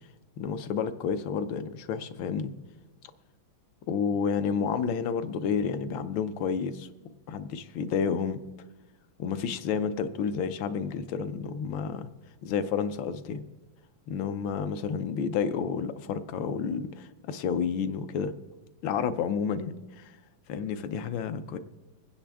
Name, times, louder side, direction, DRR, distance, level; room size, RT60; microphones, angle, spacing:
voice 1, 0.4-2.5 3.9-6.9 7.3-8.4 9.2-12.1 12.4-13.4 14.1-18.3 18.8-20.1 20.5-21.6, left 6 dB, 75° left, 10 dB, 1.5 m, -30 dB
24.5 x 9.8 x 3.5 m, 1.2 s
omnidirectional pair, 2.2 m